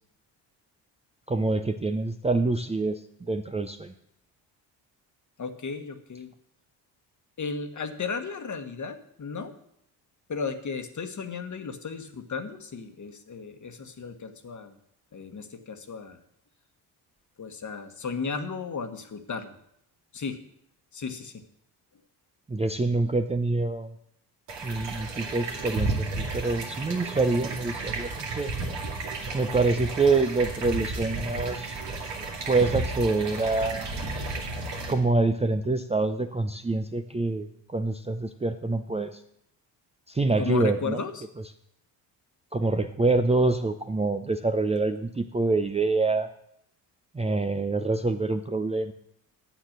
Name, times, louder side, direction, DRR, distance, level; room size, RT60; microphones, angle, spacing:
voice 1, 1.3-3.9 22.5-23.9 24.6-28.5 29.3-31.8 32.5-34.0 34.7-39.2 40.1-41.0 42.5-46.3 47.1-48.9, right 3 dB, 15° right, 7 dB, 0.6 m, -26 dB
voice 2, 5.4-6.3 7.4-9.5 10.3-14.7 15.1-16.2 17.4-19.5 20.1-20.4 20.9-21.4 40.4-41.3, left 5 dB, 40° left, 8 dB, 1.4 m, -34 dB
sound 1, 24.5-34.9, right 3 dB, 65° right, 2.2 m, -33 dB
9.2 x 7.4 x 6.6 m, 0.72 s
supercardioid pair, 65°, 46 cm